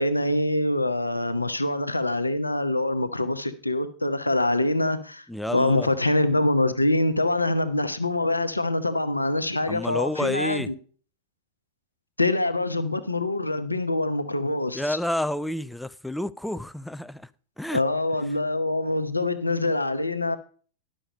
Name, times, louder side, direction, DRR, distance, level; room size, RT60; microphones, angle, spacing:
voice 1, 0.0-10.7 12.2-15.0 17.7-20.4, left 2 dB, 85° left, 0.8 m, -25 dB
voice 2, 5.3-5.9 9.7-10.7 14.7-17.3 17.6-17.8, left 1 dB, ahead, 0.4 m, -29 dB
11.0 x 6.4 x 5.3 m
figure-of-eight pair, 90°, 0 cm